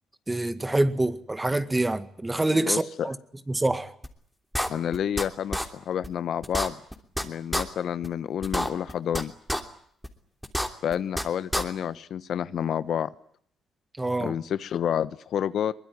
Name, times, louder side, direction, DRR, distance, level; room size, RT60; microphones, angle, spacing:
voice 1, 0.3-3.2 3.5-3.9 14.0-14.3, right 2 dB, 15° right, 2.0 m, -26 dB
voice 2, 2.7-3.1 4.7-6.8 7.2-9.3 10.8-13.1 14.2-15.7, left 9 dB, 65° left, 1.0 m, -29 dB
sound 1, 4.0-4.1 4.5-5.2 5.5-5.7 6.0-6.1 6.4-7.2 7.5-7.6 8.0-8.1 8.4-9.2 9.5-9.6 10.0-10.1 10.4-11.2 11.5-11.6, equal, ahead, 3.1 m, -27 dB
23.0 x 21.0 x 9.4 m
cardioid pair, 90°, 0 cm